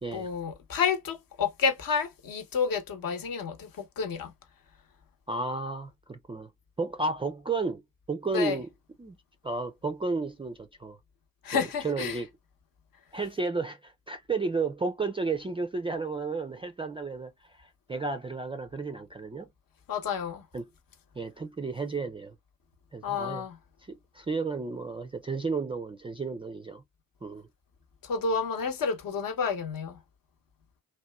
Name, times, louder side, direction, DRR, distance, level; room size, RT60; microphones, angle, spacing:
voice 1, 0.1-3.7 4.0-4.3 8.3-8.6 11.4-12.2 19.9-20.4 23.0-23.6 28.1-30.0, left 6 dB, 50° left, 0.9 m, -30 dB
voice 2, 5.3-6.5 6.8-7.8 8.1-8.7 9.0-9.2 9.4-11.0 11.5-12.3 13.1-19.5 20.5-20.6 21.2-22.3 22.9-23.5 23.9-26.8 27.2-27.5, right 3 dB, 15° right, 0.3 m, -32 dB
2.8 x 2.2 x 2.2 m
hypercardioid pair, 45°, 43 cm